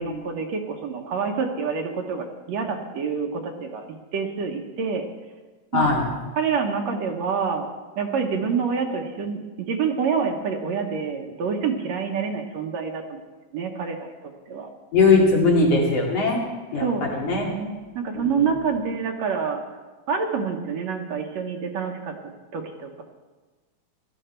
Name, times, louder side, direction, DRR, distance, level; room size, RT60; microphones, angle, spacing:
voice 1, 0.0-3.8 4.1-5.1 5.7-5.9 6.4-7.7 8.0-13.2 13.5-14.1 14.5-14.7 16.8-19.6 20.1-23.0, right 5 dB, 70° right, 3 dB, 2.2 m, -27 dB
voice 2, 5.7-6.1 14.9-16.4 16.7-17.5 18.1-18.4, left 3 dB, 55° left, -2 dB, 3.3 m, -20 dB
16.5 x 12.5 x 4.4 m, 1.3 s
omnidirectional pair, 3.4 m